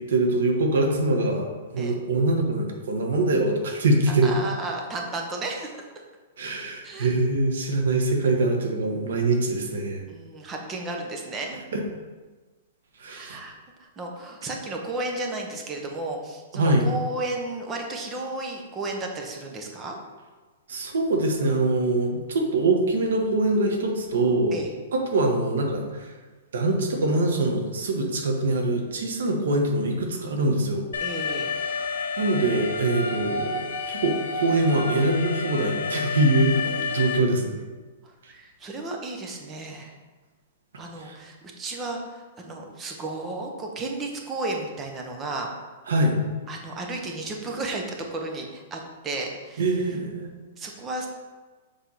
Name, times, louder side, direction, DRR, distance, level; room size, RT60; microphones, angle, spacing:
voice 1, 0.0-4.3 6.4-10.0 11.7-11.8 13.0-13.4 16.5-16.8 20.7-24.6 24.9-26.1 26.5-30.8 32.2-33.6 33.9-37.5 41.0-41.2 45.9-46.2 49.6-50.3, right 2 dB, 80° right, 2 dB, 1.5 m, -23 dB
voice 2, 4.1-5.8 6.8-7.1 10.1-11.6 13.1-20.0 24.5-24.7 31.0-31.5 36.6-36.9 38.3-39.9 40.8-45.5 46.5-49.6 50.6-51.1, right 2 dB, 15° right, 2 dB, 0.8 m, -33 dB
Alarm, 30.9-37.2, left 4 dB, 85° left, 1.2 m, -30 dB
7.1 x 3.6 x 5.7 m, 1.3 s
hypercardioid pair, 170°, 0 cm